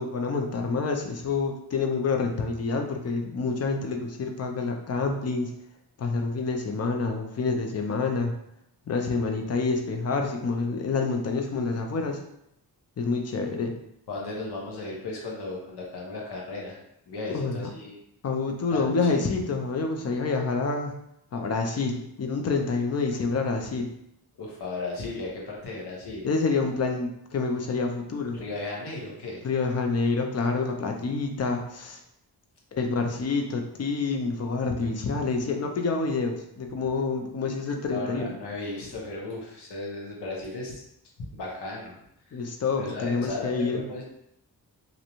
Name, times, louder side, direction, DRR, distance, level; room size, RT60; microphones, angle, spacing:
voice 1, 0.0-5.5 6.0-8.3 8.9-12.2 13.0-13.7 17.3-17.7 18.2-20.9 21.3-23.9 26.2-28.4 29.4-32.0 32.7-38.3 42.3-43.8, left 4 dB, 40° left, 4 dB, 0.4 m, -27 dB
voice 2, 14.1-16.8 17.1-18.0 18.7-19.2 24.4-26.3 28.3-29.4 37.9-40.8 41.2-42.0 42.3-42.4 42.8-44.0, left 2 dB, 85° left, -2 dB, 0.8 m, -35 dB
2.5 x 2.1 x 2.9 m, 0.77 s
wide cardioid pair, 110°, 39 cm